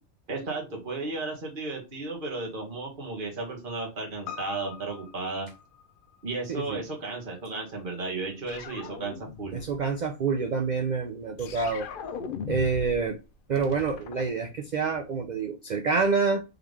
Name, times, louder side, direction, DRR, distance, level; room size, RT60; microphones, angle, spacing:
voice 1, 0.3-5.5 6.2-9.6, right 3 dB, 40° right, 0 dB, 1.5 m, -34 dB
Piano, 4.3-8.8 9.1-9.2, left 8 dB, 90° left, 1.0 m, -46 dB
voice 2, 6.5-6.8 9.5-11.9 12.5-13.2 13.5-16.4, right 4 dB, 80° right, 6 dB, 0.4 m, -27 dB
sound 1, 8.5-9.8 11.4-13.1 13.3-14.9, left 6 dB, 60° left, 0.5 m, -39 dB
3.7 x 3.5 x 3.1 m, 0.28 s
omnidirectional pair, 1.4 m